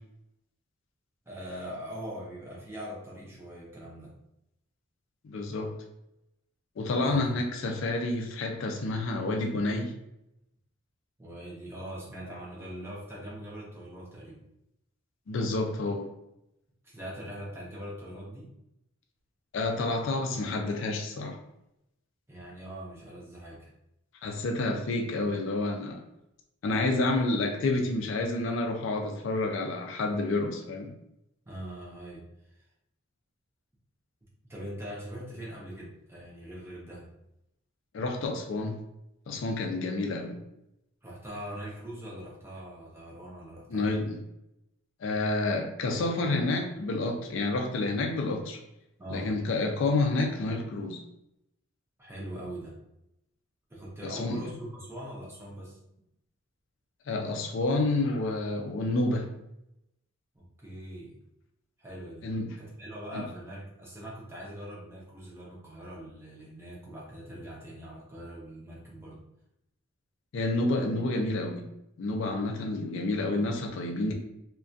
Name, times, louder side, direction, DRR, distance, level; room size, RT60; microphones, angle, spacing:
voice 1, 1.3-4.1 7.0-7.4 11.2-14.4 16.8-18.5 22.3-23.7 31.5-32.2 32.6-32.7 34.4-37.1 41.0-44.0 49.0-49.3 52.0-52.7 53.7-55.8 60.3-61.2 61.8-62.3 62.6-69.2, equal, 10° right, -5 dB, 0.5 m, -42 dB
voice 2, 5.2-5.7 6.8-9.9 15.3-16.0 19.5-21.4 24.2-26.0 26.6-30.9 37.9-38.8 39.3-40.4 43.7-44.2 45.0-48.6 49.1-51.0 54.0-54.4 57.1-59.3 62.2-62.5 63.1-63.2 70.3-71.7 72.0-74.1, left 2 dB, 65° left, 3 dB, 0.3 m, -29 dB
2.3 x 2.2 x 2.5 m, 0.84 s
head